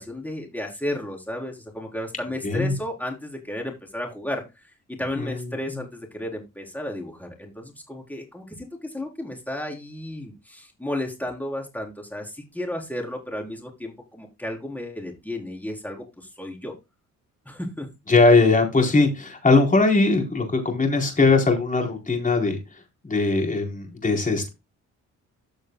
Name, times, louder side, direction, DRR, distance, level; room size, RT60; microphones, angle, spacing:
voice 1, 0.0-4.4 5.0-16.7 17.5-17.9, left 1 dB, 5° left, 1 dB, 4.3 m, -33 dB
voice 2, 2.4-2.7 5.2-5.8 18.1-24.5, left 3 dB, 25° left, 2 dB, 4.3 m, -20 dB
14.5 x 6.4 x 2.4 m, 0.24 s
cardioid pair, 90°, 30 cm